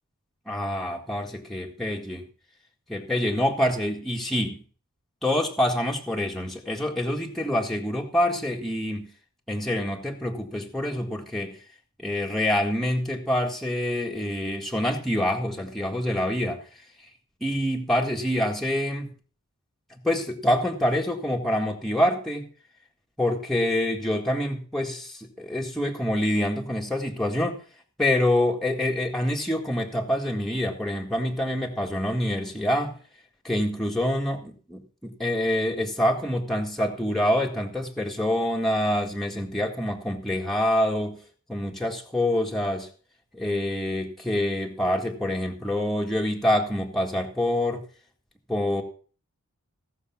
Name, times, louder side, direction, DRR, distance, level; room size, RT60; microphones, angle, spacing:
voice 1, 0.5-2.3 2.9-4.6 5.2-9.1 9.5-11.6 12.0-16.6 17.4-19.1 19.9-22.5 23.2-27.6 28.0-33.0 33.4-41.2 41.5-42.9 43.3-47.9 48.5-48.8, left 1 dB, ahead, -1 dB, 1.8 m, -26 dB
16.5 x 6.7 x 6.0 m, 0.41 s
head